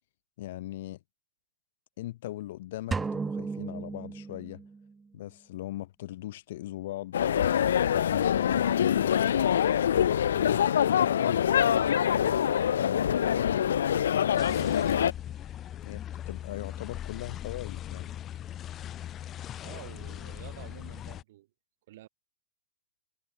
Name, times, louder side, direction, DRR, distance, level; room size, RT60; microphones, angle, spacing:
voice 1, 0.4-1.0 2.0-4.6 5.1-9.2 9.9-11.5 12.1-15.0 15.8-18.2, left 15 dB, 45° left, 0.9 m, -39 dB
sound 1, 2.9-4.9, right 4 dB, 5° right, 1.0 m, -34 dB
sound 2, 7.1-15.1, left 9 dB, 85° left, 0.7 m, -25 dB
sound 3, 14.4-21.2, left 11 dB, 15° left, 0.3 m, -39 dB
voice 2, 19.6-21.5 21.9-22.1, right 15 dB, 40° right, 3.3 m, -49 dB
supercardioid pair, 180°, 0 cm